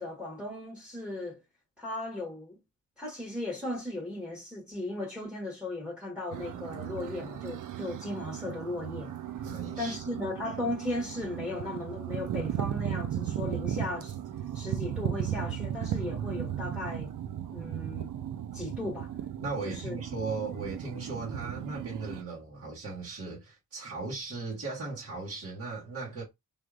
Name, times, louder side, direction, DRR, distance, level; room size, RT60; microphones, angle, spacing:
voice 1, 0.0-1.4 1.8-2.6 3.0-9.1 9.8-14.1 14.5-17.1 17.5-18.1 18.5-19.1 19.6-19.9, left 2 dB, 5° right, 1.3 m, -36 dB
sound 1, 6.3-22.2, right 10 dB, 70° right, 0.5 m, -36 dB
voice 2, 9.4-10.0 19.4-26.2, right 3 dB, 50° right, 1.3 m, -37 dB
3.4 x 2.7 x 2.4 m
cardioid pair, 95°, 32 cm